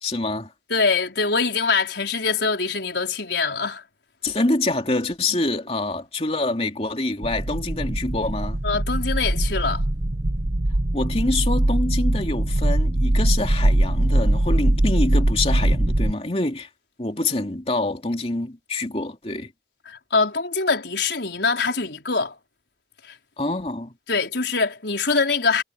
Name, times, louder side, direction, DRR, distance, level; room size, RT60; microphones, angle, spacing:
voice 1, 0.0-0.5 4.2-8.6 10.9-16.7 17.0-19.5 23.4-23.9, left 2 dB, 35° left, 2.8 m, -26 dB
voice 2, 0.7-3.8 8.6-9.8 19.9-22.4 23.0-23.1 24.1-25.6, left 4 dB, 75° left, 4.4 m, -23 dB
sound 1, 7.2-16.1, right 1 dB, 45° right, 1.0 m, -21 dB
head